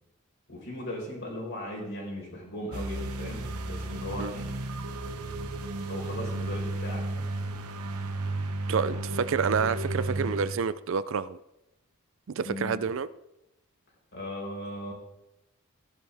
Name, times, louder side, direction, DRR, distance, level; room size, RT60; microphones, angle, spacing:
voice 1, 0.5-4.6 5.9-7.5 12.4-12.8 14.1-14.9, left 1 dB, 50° left, -1 dB, 4.4 m, -38 dB
sound 1, 2.7-10.5, right 2 dB, 90° right, 1.1 m, -33 dB
voice 2, 8.7-11.4 12.3-13.1, right 6 dB, 60° right, 16 dB, 0.4 m, -28 dB
15.0 x 11.0 x 3.4 m, 0.90 s
head